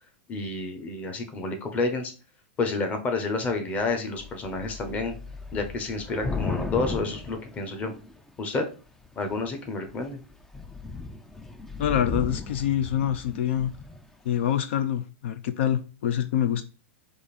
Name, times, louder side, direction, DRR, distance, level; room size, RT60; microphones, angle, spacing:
voice 1, 0.3-2.1 2.6-5.1 5.5-7.9 8.4-8.6 9.2-10.2, left 3 dB, 20° left, 5 dB, 0.8 m, -29 dB
Thunder / Rain, 3.8-8.3 9.0-9.5 9.9-10.0 10.3-14.1, left 3 dB, 5° left, 0.3 m, -35 dB
voice 2, 11.8-13.7 14.3-16.6, left 10 dB, 70° left, 10 dB, 0.5 m, -26 dB
5.0 x 2.5 x 4.1 m, 0.34 s
supercardioid pair, 150°, 7 cm